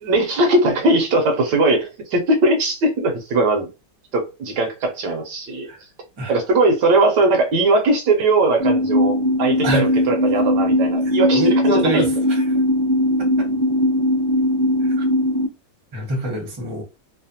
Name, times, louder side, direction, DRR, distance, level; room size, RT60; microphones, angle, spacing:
voice 1, 0.0-3.7 4.1-5.7 6.3-12.1, right 2 dB, 70° right, 1.1 m, -19 dB
sound 1, 8.6-15.5, left 1 dB, 50° left, 1.2 m, -19 dB
voice 2, 11.3-12.5 13.2-13.5 15.0-15.1 15.9-16.8, equal, 25° right, 0.5 m, -24 dB
3.2 x 2.0 x 2.6 m
omnidirectional pair, 2.0 m